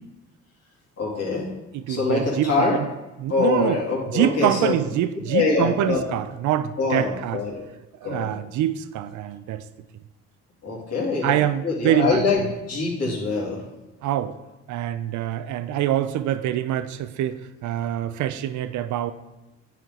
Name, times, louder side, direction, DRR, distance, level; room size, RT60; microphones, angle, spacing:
voice 1, 1.0-1.5 1.9-2.8 3.3-4.7 5.3-6.0 6.8-7.6 8.0-8.3 10.6-11.4 11.6-12.4 12.7-13.6, left 4 dB, 55° left, -3 dB, 2.4 m, -24 dB
voice 2, 1.7-2.9 3.2-3.8 4.1-7.4 8.0-9.6 11.2-12.5 13.0-13.1 14.0-14.4 14.7-19.1, right 11 dB, 70° right, 12 dB, 0.5 m, -25 dB
9.1 x 4.4 x 3.7 m, 1.0 s
cardioid pair, 90°, 30 cm